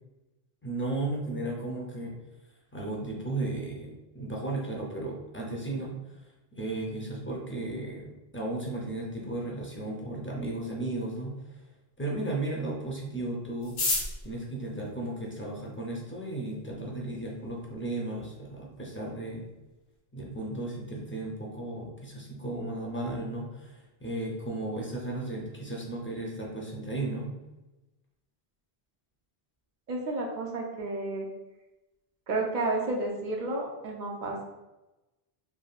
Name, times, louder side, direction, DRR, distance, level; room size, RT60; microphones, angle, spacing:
voice 1, 0.6-2.1 2.7-6.2 6.5-11.4 12.0-13.8 14.2-19.4 20.1-27.3, right 2 dB, 20° left, -2 dB, 0.3 m, -35 dB
sound 1, 13.6-15.9 16.7-16.8 17.0-17.1 17.3-17.8 18.1-18.2 18.4-18.8 19.2-19.4 19.7-20.0, left 2 dB, 80° left, 1.0 m, -33 dB
voice 2, 29.9-31.3 32.3-34.4, right 2 dB, 60° right, 0 dB, 0.6 m, -31 dB
3.2 x 2.6 x 2.3 m, 1.0 s
omnidirectional pair, 1.0 m